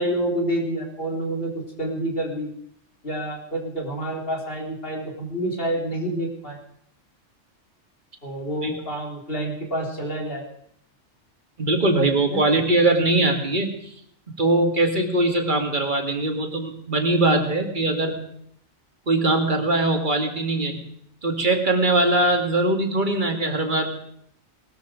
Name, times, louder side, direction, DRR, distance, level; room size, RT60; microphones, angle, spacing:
voice 1, 0.0-2.5 3.0-6.6 8.2-10.5 12.3-12.4, right 1 dB, 45° left, 0 dB, 3.8 m, -28 dB
voice 2, 11.6-13.9 14.3-18.2 19.1-20.8 21.2-23.9, right 2 dB, 40° right, 4 dB, 2.2 m, -21 dB
19.5 x 13.0 x 5.1 m, 0.69 s
omnidirectional pair, 1.3 m